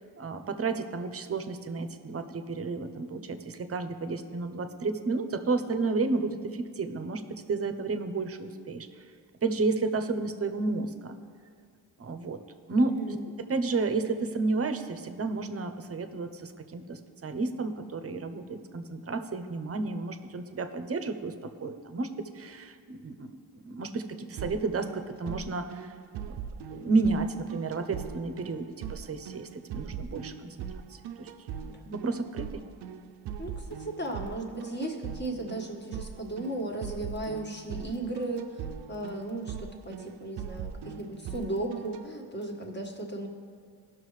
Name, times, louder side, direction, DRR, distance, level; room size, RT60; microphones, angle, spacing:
voice 1, 0.0-7.2 7.5-8.9 9.4-11.1 12.0-12.4 12.7-13.2 13.5-21.3 21.6-25.9 26.2-26.3 26.7-30.5 30.9-31.3 31.6-32.6, right 3 dB, 40° right, 9 dB, 0.8 m, -31 dB
voice 2, 12.8-13.2 33.4-43.3, right 2 dB, 25° left, 1 dB, 1.6 m, -36 dB
sound 1, 24.4-42.0, right 8 dB, 90° right, 0.6 m, -41 dB
16.5 x 6.1 x 3.2 m, 2.1 s
cardioid pair, 85°, 38 cm